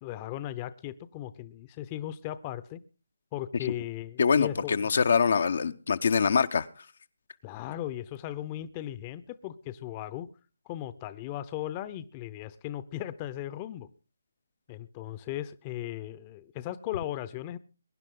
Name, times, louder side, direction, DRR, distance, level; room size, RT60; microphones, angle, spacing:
voice 1, 0.0-2.8 3.3-4.8 7.4-10.3 10.7-13.9 14.7-17.6, left 13 dB, 25° left, 0.8 m, -37 dB
voice 2, 4.2-6.9, left 5 dB, 60° left, 0.8 m, -24 dB
22.5 x 10.5 x 3.8 m
figure-of-eight pair, 145°, 0 cm